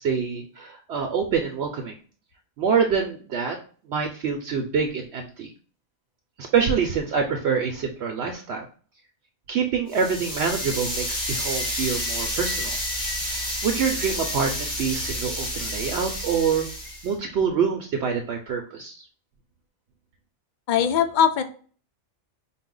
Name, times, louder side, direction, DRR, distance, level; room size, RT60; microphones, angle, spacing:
voice 1, 0.0-2.0 2.6-3.6 3.9-5.5 6.4-8.7 9.5-12.8 13.2-16.7 17.0-19.1, right 6 dB, 65° right, 3 dB, 0.8 m, -26 dB
sound 1, 9.9-17.1, equal, 40° left, 1.8 m, -30 dB
voice 2, 20.7-21.4, left 8 dB, 60° left, 8 dB, 0.5 m, -20 dB
4.8 x 2.1 x 3.7 m, 0.42 s
omnidirectional pair, 1.3 m